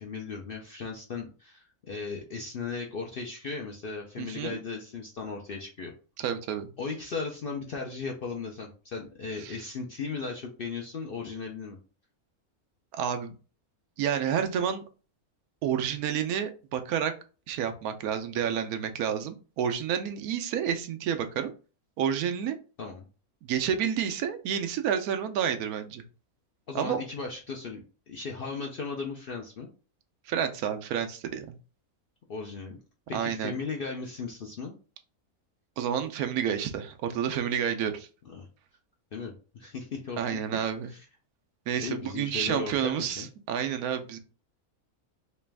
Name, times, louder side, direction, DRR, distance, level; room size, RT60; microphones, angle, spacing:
voice 1, 0.0-5.9 6.8-11.8 22.8-23.1 26.7-29.7 32.3-32.8 33.1-34.7 38.2-38.5 39.1-40.2 40.9-41.0 41.8-43.3, left 4 dB, 60° left, 1 dB, 0.6 m, -36 dB
voice 2, 4.2-4.6 6.2-6.7 9.4-9.5 12.9-13.3 14.0-14.8 15.6-17.1 17.5-21.5 22.0-22.6 23.4-26.0 26.7-27.0 30.3-31.5 33.1-33.5 35.8-38.1 40.2-40.9 41.7-44.2, right 8 dB, 85° right, 7 dB, 1.1 m, -29 dB
3.3 x 3.0 x 3.3 m, 0.35 s
omnidirectional pair, 1.5 m